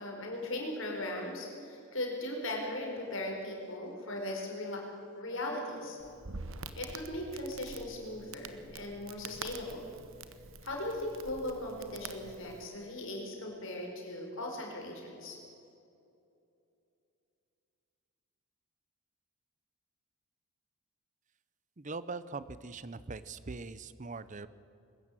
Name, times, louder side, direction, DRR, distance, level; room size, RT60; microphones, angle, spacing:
voice 1, 0.0-4.8 5.2-6.0 6.8-9.9 10.6-15.4, left 1 dB, 60° left, 0 dB, 4.8 m, -38 dB
Crackle, 6.0-12.7, right 4 dB, 65° right, 1.2 m, -47 dB
voice 2, 21.8-24.5, right 3 dB, 35° right, 15 dB, 0.6 m, -41 dB
22.0 x 13.5 x 9.1 m, 2.7 s
head